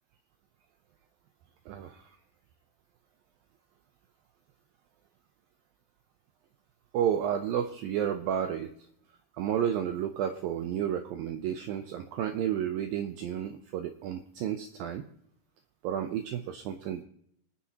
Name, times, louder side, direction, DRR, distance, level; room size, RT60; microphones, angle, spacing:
voice 1, 1.7-2.2 6.9-8.7 9.4-15.1 15.8-17.0, right 9 dB, 80° right, 8 dB, 2.1 m, -31 dB
26.0 x 9.8 x 2.9 m, 0.70 s
omnidirectional pair, 4.8 m